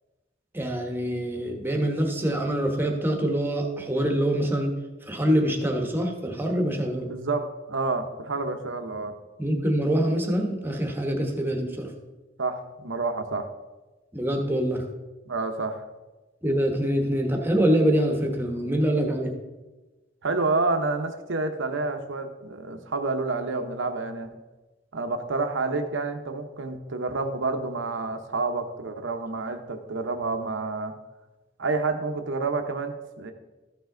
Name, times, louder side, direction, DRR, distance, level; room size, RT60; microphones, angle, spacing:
voice 1, 0.5-7.1 9.4-11.9 14.1-14.9 16.4-19.3, right 1 dB, 10° right, 2 dB, 1.2 m, -25 dB
voice 2, 7.0-9.1 12.4-13.5 15.3-15.9 20.2-24.3 24.9-30.9 31.6-33.3, right 3 dB, 65° right, 7 dB, 0.9 m, -29 dB
13.5 x 5.7 x 3.8 m, 1.2 s
head